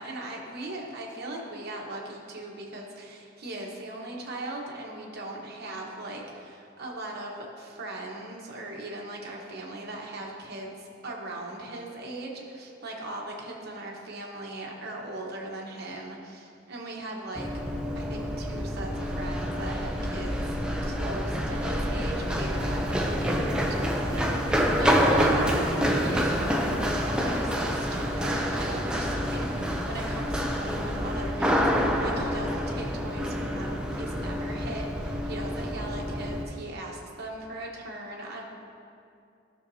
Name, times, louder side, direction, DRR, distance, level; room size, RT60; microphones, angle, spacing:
voice 1, 0.0-17.5 17.9-20.4 20.8-38.4, right 1 dB, 50° right, -1 dB, 1.2 m, -39 dB
Run, 17.4-36.4, equal, 5° right, 0.5 m, -27 dB
13.0 x 6.5 x 2.8 m, 2.6 s
head